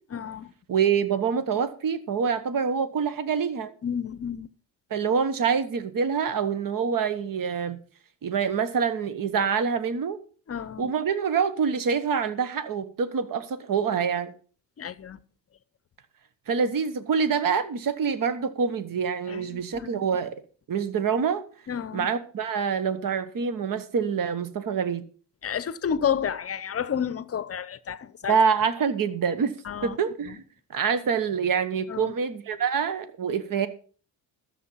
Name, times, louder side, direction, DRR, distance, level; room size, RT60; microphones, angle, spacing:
voice 1, 0.1-0.5 3.8-4.5 10.5-10.9 14.8-15.2 19.3-20.1 21.7-22.1 25.4-28.4 29.7-30.0 30.3-30.4 31.9-32.1, left 8 dB, 35° left, 0.7 m, -31 dB
voice 2, 0.7-3.7 4.9-7.8 8.2-10.2 10.8-14.3 16.5-20.3 20.7-21.4 21.9-25.0 28.3-29.5 29.8-30.4 30.7-33.7, right 6 dB, 50° right, 1.3 m, -26 dB
13.0 x 7.4 x 5.6 m
cardioid pair, 110°, 43 cm